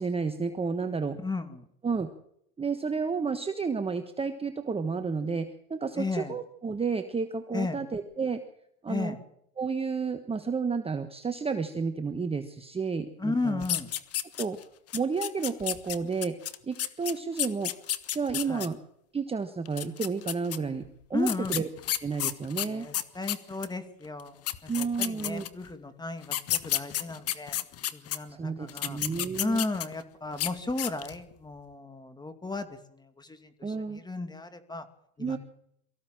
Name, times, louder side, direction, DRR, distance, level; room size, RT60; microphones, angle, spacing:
voice 1, 0.0-1.2 1.8-2.1 2.6-8.4 8.8-9.2 9.6-13.6 14.4-14.6 14.9-16.4 16.7-17.7 18.1-18.8 19.1-21.7 22.0-22.9 24.7-25.4 28.3-29.6 33.6-34.0 35.2-35.4, right 5 dB, 10° right, 8 dB, 1.3 m, -31 dB
voice 2, 1.2-1.6 6.0-6.3 7.5-7.8 8.9-9.2 13.2-13.9 18.5-18.7 21.1-21.6 22.7-24.4 24.6-27.5 27.9-29.0 29.4-34.8 35.2-35.4, left 3 dB, 10° left, 9 dB, 2.5 m, -34 dB
sound 1, 13.6-14.6 14.9-18.7 19.7-20.6 21.2-23.7 24.2-24.3 24.5-25.7 26.2-28.2 28.7-30.0 30.3-30.5 30.8-31.2, left 12 dB, 30° left, 1.5 m, -31 dB
24.0 x 15.0 x 7.6 m, 0.73 s
supercardioid pair, 120°, 46 cm